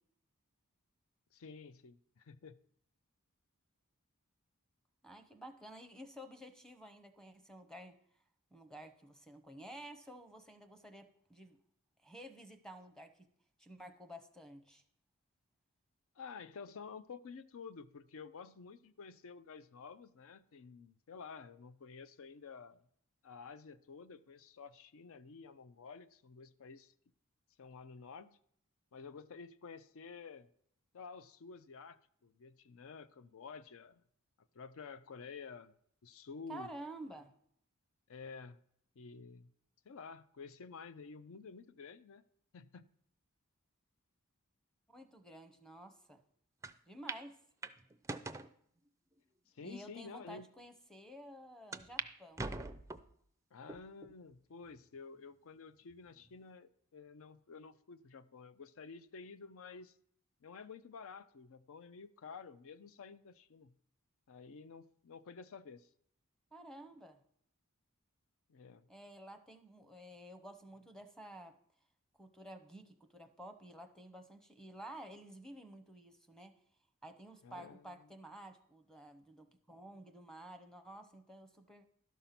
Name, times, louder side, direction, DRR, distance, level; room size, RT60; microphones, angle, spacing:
voice 1, 1.3-2.6 16.2-22.8 23.2-26.9 27.6-28.4 28.9-30.5 30.9-34.0 34.5-35.7 36.0-36.7 38.1-38.6 39.0-39.5 39.9-42.2 42.5-42.9 49.5-50.5 53.5-59.9 60.4-63.7 64.3-65.9 68.5-68.9 77.4-78.1, left 5 dB, 65° left, 0.5 m, -51 dB
voice 2, 5.0-8.0 8.5-11.6 12.0-13.1 13.6-14.8 36.5-37.3 44.9-46.2 46.9-47.4 49.6-52.5 66.5-67.2 68.9-71.5 72.2-76.6 77.0-81.9, right 1 dB, 5° left, 0.8 m, -52 dB
sound 1, 46.6-46.7 47.1-47.2 47.6-48.5 49.2-49.3 50.0-50.1 50.4-50.5 51.7-52.1 52.4-53.1 53.7-54.1 54.7-54.8 55.9-56.3, right 3 dB, 15° right, 0.4 m, -43 dB
12.5 x 5.5 x 5.8 m
head